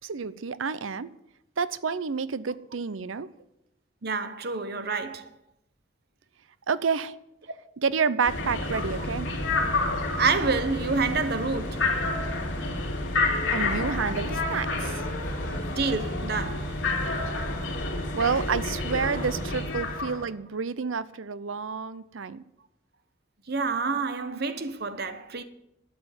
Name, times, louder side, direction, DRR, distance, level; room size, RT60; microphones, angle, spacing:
voice 1, 0.0-1.1 1.6-3.3 6.7-7.1 7.8-9.3 13.5-15.1 18.1-22.4, right 5 dB, 90° right, 0.7 m, -29 dB
voice 2, 4.0-5.3 10.2-12.0 15.8-16.8 19.2-19.3 21.7-21.8 23.5-25.4, right 4 dB, 55° right, 0.9 m, -28 dB
sound 1, 8.3-20.2, left 2 dB, 70° left, 3.5 m, -29 dB
12.0 x 7.9 x 9.7 m
head